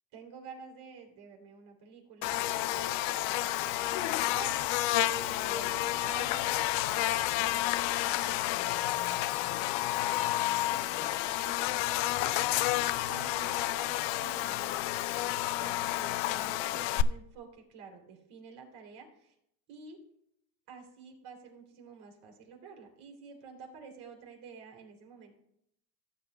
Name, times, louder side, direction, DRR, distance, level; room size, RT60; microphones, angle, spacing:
voice 1, 0.1-10.0 10.3-12.5 13.1-14.9 15.6-19.3 19.7-20.0 20.7-25.3, right 5 dB, 70° right, 2 dB, 3.2 m, -50 dB
Buzz, 2.2-17.0, left 15 dB, 65° left, 0.6 m, -30 dB
sound 1, 7.0-8.7 10.4-13.4, right 5 dB, 45° right, 2.2 m, -55 dB
16.5 x 7.8 x 2.3 m, 0.75 s
supercardioid pair, 110°, 49 cm